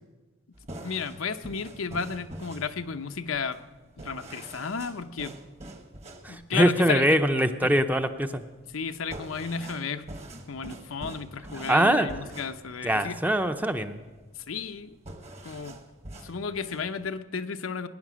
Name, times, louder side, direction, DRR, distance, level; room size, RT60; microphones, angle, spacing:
sound 1, 0.5-17.1, right 1 dB, 30° right, 1.2 m, -45 dB
voice 1, 0.8-3.6 4.0-5.3 6.3-7.2 7.6-7.7 8.7-10.1 10.5-13.2 14.5-14.9 15.4-15.8 16.2-17.9, left 5 dB, 85° left, 8 dB, 0.8 m, -33 dB
voice 2, 6.2-8.4 11.7-12.1 12.8-14.0, right 1 dB, 10° right, 8 dB, 0.6 m, -23 dB
20.5 x 9.8 x 6.2 m, 1.2 s
head